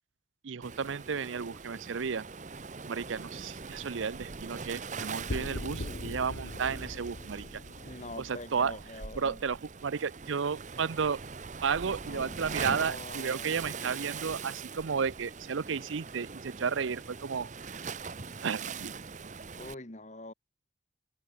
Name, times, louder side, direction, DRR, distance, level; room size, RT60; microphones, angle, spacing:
voice 1, 0.4-2.3 2.9-7.6 8.2-8.8 9.2-11.2 11.6-17.8 18.4-19.0, right 6 dB, 90° right, 0.6 m, -33 dB
Waves surf, 0.6-19.7, right 5 dB, 40° right, 0.8 m, -42 dB
sound 1, 5.3-9.7, left 1 dB, 60° left, 1.4 m, -41 dB
voice 2, 7.8-9.4 12.0-13.6 19.6-20.3, left 2 dB, 40° left, 2.3 m, -44 dB
sound 2, 8.8-9.1 9.8-10.4 11.0-11.2 12.4-12.7 13.3-13.4 13.6-14.6 15.1-15.4, right 1 dB, 25° right, 1.8 m, -58 dB
head